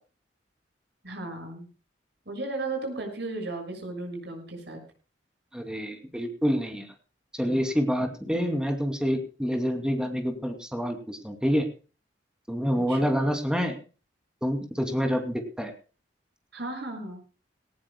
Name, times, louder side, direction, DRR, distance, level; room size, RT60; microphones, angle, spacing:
voice 1, 1.0-1.7 2.2-4.8 12.7-13.1 16.5-17.2, right 2 dB, 65° right, 3 dB, 6.4 m, -35 dB
voice 2, 5.5-6.9 7.3-11.7 12.5-13.8 14.4-15.7, equal, 5° right, 5 dB, 2.6 m, -27 dB
18.5 x 18.5 x 2.2 m, 0.34 s
head